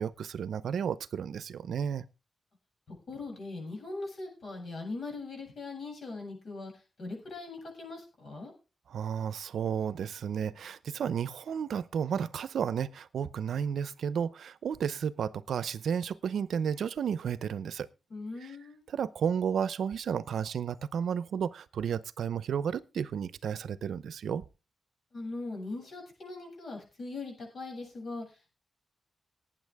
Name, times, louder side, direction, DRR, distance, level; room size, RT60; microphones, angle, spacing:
voice 1, 0.0-2.0 8.9-17.9 18.4-18.5 18.9-24.4, right 7 dB, 75° right, 0.6 m, -32 dB
voice 2, 2.9-6.7 7.0-8.5 18.1-18.9 25.1-28.5, left 3 dB, 50° left, 7.5 m, -40 dB
19.0 x 9.0 x 3.5 m
wide cardioid pair, 155°, 0 cm